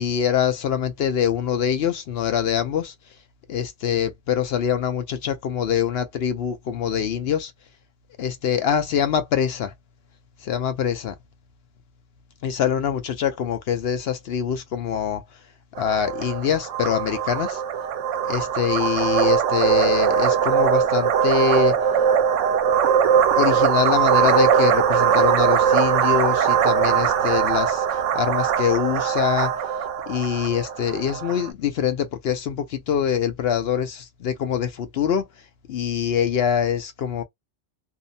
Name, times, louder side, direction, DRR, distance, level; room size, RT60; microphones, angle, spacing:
voice 1, 0.0-2.9 3.5-7.5 8.2-9.7 10.4-11.1 12.4-15.2 15.8-17.6 18.2-21.7 23.4-29.5 30.1-35.3 35.7-37.2, left 8 dB, 65° left, 0.7 m, -24 dB
sound 1, 15.8-31.5, right 8 dB, 75° right, 0.9 m, -21 dB
2.7 x 2.0 x 2.5 m
omnidirectional pair, 1.3 m